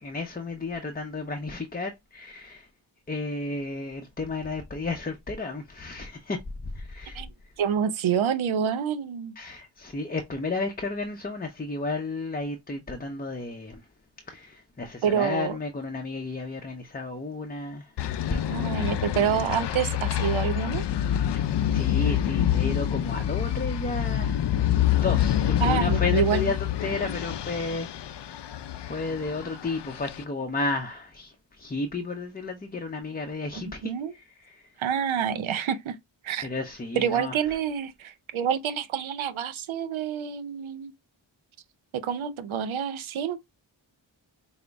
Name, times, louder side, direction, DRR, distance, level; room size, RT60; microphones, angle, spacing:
voice 1, 0.0-2.7 3.1-6.4 6.7-7.2 9.4-13.8 14.3-17.9 18.3-18.4 21.3-21.5 21.7-24.4 25.0-28.4 28.8-34.6 36.4-37.4, left 3 dB, 20° left, 0.6 m, -33 dB
voice 2, 7.6-9.3 15.0-15.6 18.5-20.8 25.6-26.5 33.6-34.1 34.8-36.0 36.2-36.5 37.0-40.9 41.9-43.4, right 8 dB, 80° right, 0.6 m, -27 dB
sound 1, 18.0-30.2, left 11 dB, 60° left, 0.5 m, -27 dB
5.0 x 2.1 x 3.4 m
cardioid pair, 45°, 47 cm